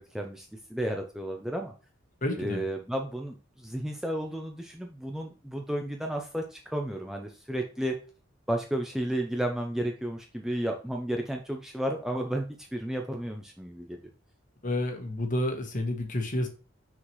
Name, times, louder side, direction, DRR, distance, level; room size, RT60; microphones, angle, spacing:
voice 1, 0.1-1.7 2.4-7.9 8.5-14.0, right 1 dB, ahead, 2 dB, 0.5 m, -32 dB
voice 2, 2.2-2.6 14.6-16.5, left 1 dB, 40° left, 5 dB, 1.2 m, -30 dB
6.2 x 5.7 x 3.1 m, 0.36 s
head